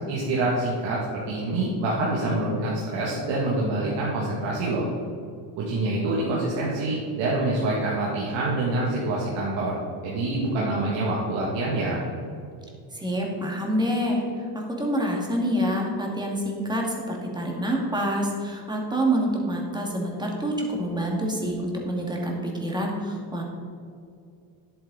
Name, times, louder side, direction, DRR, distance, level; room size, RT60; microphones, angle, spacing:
voice 1, 0.1-1.0 1.3-4.9 5.6-9.8 10.0-12.0, right 2 dB, 75° right, -5 dB, 2.4 m, -26 dB
voice 2, 12.9-23.4, equal, 10° right, -1 dB, 2.2 m, -27 dB
10.5 x 8.7 x 4.1 m, 2.4 s
cardioid pair, 130°, 45 cm